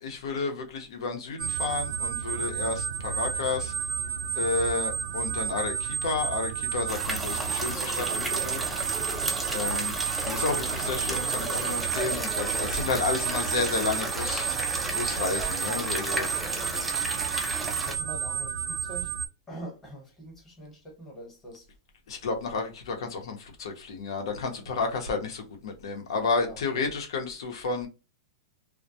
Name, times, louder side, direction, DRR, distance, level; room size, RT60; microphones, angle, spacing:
voice 1, 0.0-3.7 4.4-8.6 9.5-9.9 10.2-14.5 14.9-16.3 22.1-27.9, left 4 dB, 70° left, 0.8 m, -31 dB
sound 1, 1.4-19.3, right 8 dB, 80° right, 0.4 m, -31 dB
sound 2, 6.9-18.0, right 1 dB, 5° right, 0.3 m, -33 dB
voice 2, 9.0-9.3 17.5-19.1 19.5-21.7 24.4-24.7 26.4-26.9, right 1 dB, 15° left, 1.0 m, -44 dB
2.2 x 2.1 x 2.7 m
supercardioid pair, 160°, 3 cm